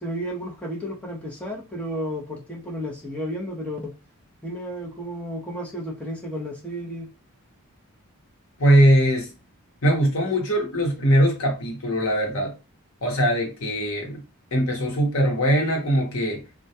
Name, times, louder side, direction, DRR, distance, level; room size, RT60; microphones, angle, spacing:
voice 1, 0.0-4.0 4.4-7.1, equal, 5° left, 0.6 m, -32 dB
voice 2, 8.6-9.3 9.8-12.5 13.0-14.2 14.5-16.4, equal, 65° left, 0.9 m, -21 dB
2.2 x 2.2 x 2.7 m
head